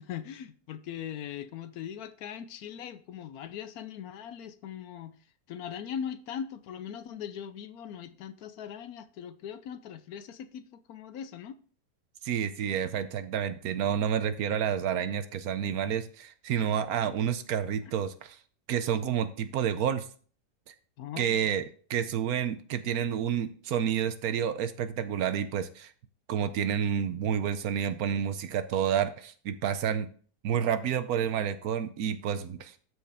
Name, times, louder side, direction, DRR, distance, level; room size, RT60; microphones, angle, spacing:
voice 1, 0.0-5.1 5.5-11.6 21.0-21.5, left 8 dB, 70° left, 1.0 m, -40 dB
voice 2, 12.2-18.4 18.7-20.1 20.7-20.8 21.2-21.6 21.9-25.9 26.3-30.1 30.4-32.8, right 8 dB, 70° right, 1.0 m, -29 dB
13.0 x 4.5 x 3.5 m
omnidirectional pair, 1.8 m